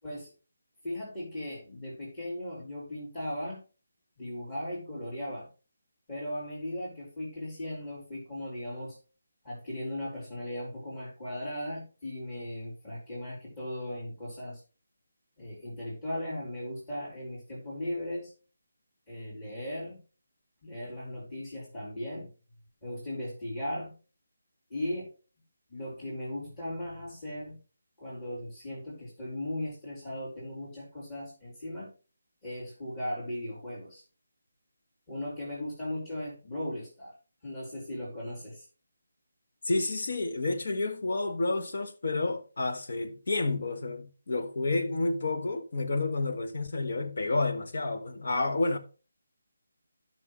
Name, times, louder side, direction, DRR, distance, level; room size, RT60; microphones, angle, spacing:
voice 1, 0.8-3.6 4.2-5.5 6.1-9.0 9.4-14.6 15.4-18.3 19.1-20.0 20.6-22.3 22.8-23.9 24.7-25.1 25.7-27.6 28.0-31.9 32.4-34.0 35.1-37.1 37.4-38.7, left 1 dB, 20° left, 3.7 m, -37 dB
voice 2, 39.6-48.8, left 2 dB, 50° left, 1.3 m, -30 dB
14.5 x 6.0 x 3.2 m
figure-of-eight pair, 150°, 0 cm